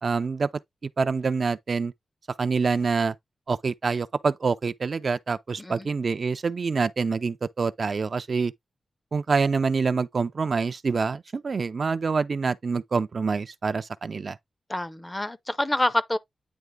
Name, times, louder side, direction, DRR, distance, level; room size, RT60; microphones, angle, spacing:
voice 1, 0.0-0.5 0.8-1.9 2.4-3.1 3.5-8.5 9.1-14.4, right 4 dB, 45° right, 0.3 m, -26 dB
voice 2, 14.7-16.2, left 1 dB, 15° left, 0.5 m, -27 dB
9.3 x 3.2 x 3.5 m
wide cardioid pair, 160°, 0 cm